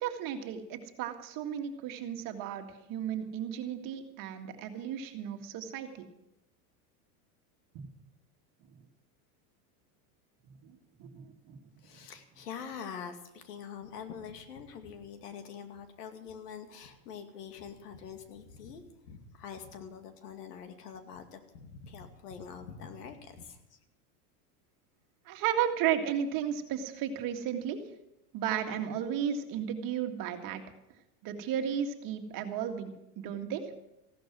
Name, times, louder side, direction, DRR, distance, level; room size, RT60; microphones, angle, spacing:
voice 1, 0.0-6.0 7.7-7.9 10.6-11.6 25.3-27.8 28.3-30.6 31.2-33.6, right 9 dB, 45° right, 5 dB, 2.0 m, -34 dB
voice 2, 11.8-23.8, left 7 dB, 90° left, 7 dB, 2.4 m, -45 dB
15.5 x 12.0 x 6.2 m, 0.87 s
supercardioid pair, 130°, 45 cm